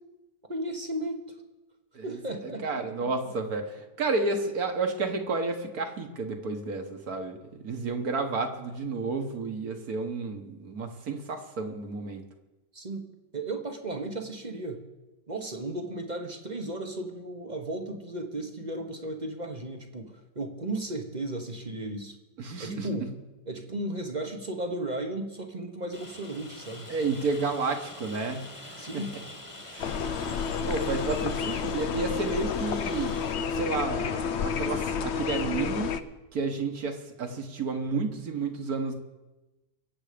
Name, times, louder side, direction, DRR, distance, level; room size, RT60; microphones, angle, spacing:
voice 1, 0.5-1.4 2.0-3.1 12.7-13.1 13.3-14.8 15.3-22.2 22.6-23.1 23.5-26.9 28.8-29.1, right 1 dB, 30° right, 5 dB, 1.0 m, -35 dB
voice 2, 1.9-12.2 22.4-23.0 26.9-29.2 29.7-29.9 30.7-33.2 33.5-35.9 36.3-38.9, right 4 dB, 60° right, 5 dB, 1.8 m, -31 dB
Rain, 25.9-33.3, left 1 dB, 20° left, 1.6 m, -45 dB
sound 1, 29.8-36.0, left 6 dB, 60° left, 0.7 m, -30 dB
23.5 x 8.0 x 5.1 m, 1.1 s
omnidirectional pair, 1.8 m